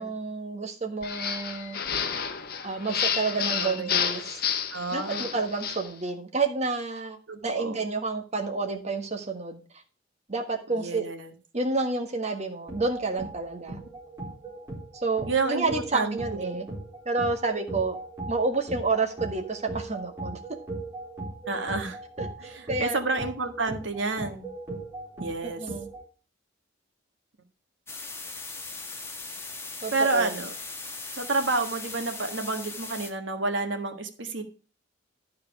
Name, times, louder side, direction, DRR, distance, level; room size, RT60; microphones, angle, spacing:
voice 1, 0.0-1.8 2.6-4.4 4.9-9.8 10.3-11.1 11.5-13.8 14.9-16.7 17.0-18.0 18.3-20.4 22.2-23.0 25.4-25.9 29.8-30.3, right 3 dB, 35° right, 4 dB, 1.6 m, -29 dB
sound 1, 1.0-5.9, left 7 dB, 50° left, 1.0 m, -30 dB
voice 2, 3.4-4.0 4.7-5.3 7.3-7.8 10.7-11.3 15.3-15.6 15.9-16.6 21.5-22.0 22.4-24.5 25.2-25.7 29.9-30.5 31.1-34.4, right 3 dB, 65° right, 6 dB, 1.6 m, -30 dB
sound 2, 12.6-26.0, right 2 dB, 15° right, 4.3 m, -39 dB
sound 3, 27.9-33.1, left 3 dB, 15° left, 1.3 m, -39 dB
12.0 x 4.8 x 6.0 m, 0.35 s
head